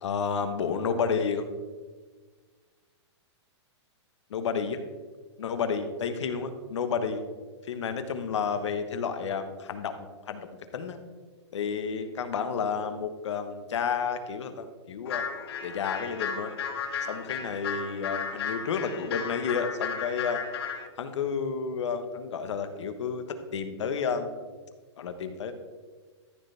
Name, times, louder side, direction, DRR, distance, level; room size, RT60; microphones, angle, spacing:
voice 1, 0.0-1.5 4.3-4.8 5.4-7.2 7.7-10.5 10.7-11.0 11.5-15.2 15.6-16.6 17.1-20.4 21.0-23.2 23.5-24.3 25.0-25.5, left 6 dB, 75° left, 8 dB, 1.2 m, -31 dB
sound 1, 15.1-20.9, left 6 dB, 60° left, 1.0 m, -34 dB
13.5 x 6.8 x 3.4 m, 1.4 s
hypercardioid pair, 170°, 15 cm